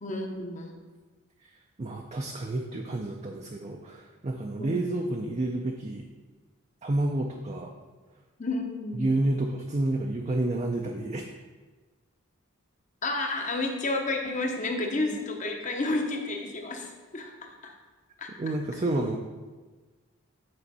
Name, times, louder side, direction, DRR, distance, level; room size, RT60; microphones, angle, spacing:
voice 1, 0.0-0.8 4.6-4.8 8.4-9.1 13.0-17.7 18.2-18.5, left 2 dB, 35° left, 3 dB, 0.8 m, -31 dB
voice 2, 1.8-6.0 6.8-7.7 9.0-11.2 18.4-19.2, right 2 dB, 30° right, 2 dB, 0.4 m, -29 dB
9.8 x 4.4 x 4.1 m, 1.3 s
head